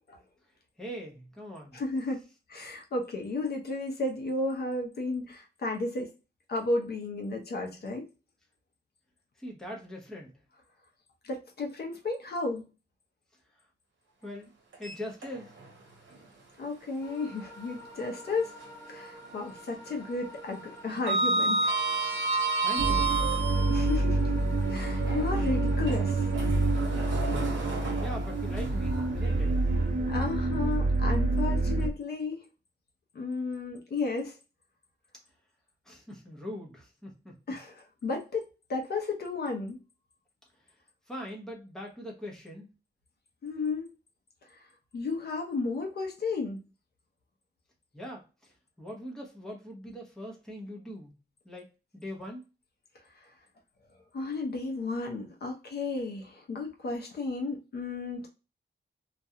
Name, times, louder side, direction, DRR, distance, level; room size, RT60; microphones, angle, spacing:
voice 1, 0.8-1.8 9.4-10.3 14.2-14.5 14.8-15.5 22.3-23.1 28.0-29.6 35.8-37.3 41.1-42.7 47.9-48.5 48.8-51.1 51.4-51.6 51.9-52.5, equal, 5° left, -2 dB, 0.7 m, -41 dB
voice 2, 1.7-2.2 2.5-6.1 6.5-8.0 11.2-12.7 16.6-18.5 18.9-21.7 23.7-24.3 24.7-26.2 30.1-32.4 33.1-34.4 37.5-39.8 43.4-43.9 44.9-46.6 54.1-58.3, left 3 dB, 55° left, 1 dB, 0.6 m, -33 dB
Sliding door, 14.7-15.7 16.1-16.2 17.9-19.0 19.2-19.6 19.9-24.0 24.6-29.8, right 3 dB, 75° right, 1.0 m, -32 dB
sound 1, 17.0-29.1, equal, 20° left, 1.1 m, -49 dB
sound 2, 22.8-31.9, right 2 dB, 45° right, 0.5 m, -27 dB
2.4 x 2.2 x 2.7 m, 0.31 s
wide cardioid pair, 145°, 19 cm